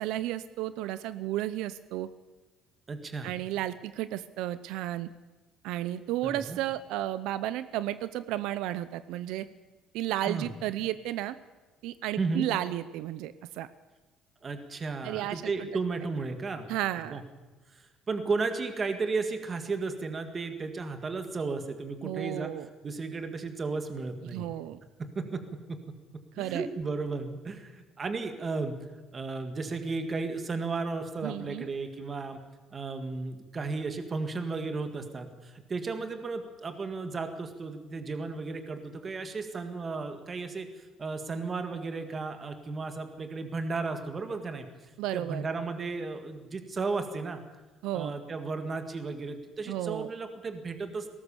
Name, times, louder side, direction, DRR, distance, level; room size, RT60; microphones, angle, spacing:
voice 1, 0.0-2.1 3.2-5.1 5.6-9.5 9.9-11.4 11.8-13.7 15.0-15.7 16.7-17.2 22.0-22.7 24.2-24.8 26.4-26.7 31.2-31.7 45.0-45.4 47.8-48.1 49.7-50.1, right 13 dB, 80° right, 14 dB, 0.7 m, -33 dB
voice 2, 2.9-3.3 6.2-6.6 10.3-10.5 12.2-12.5 14.4-16.7 17.1-17.2 18.1-22.5 22.8-24.5 25.0-25.4 25.7-25.8 26.4-28.7 29.1-32.4 32.7-40.7 41.0-44.7 45.1-47.4 47.9-51.1, right 4 dB, 25° right, 8 dB, 1.9 m, -34 dB
20.5 x 18.0 x 7.1 m, 1.2 s
cardioid pair, 165°, 0 cm